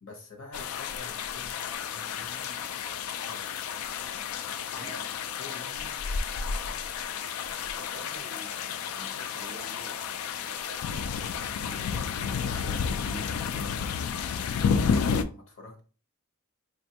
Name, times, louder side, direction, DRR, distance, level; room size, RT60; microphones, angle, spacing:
voice 1, 0.0-2.7 3.2-3.6 4.3-5.0 5.4-7.0 14.5-15.8, left 3 dB, 65° left, 1.0 m, -49 dB
sound 1, 0.5-15.2, left 6 dB, 85° left, 0.3 m, -31 dB
voice 2, 4.8-5.1 7.6-12.1 12.4-13.7, right 3 dB, 45° right, 0.5 m, -48 dB
4.2 x 2.5 x 2.8 m
head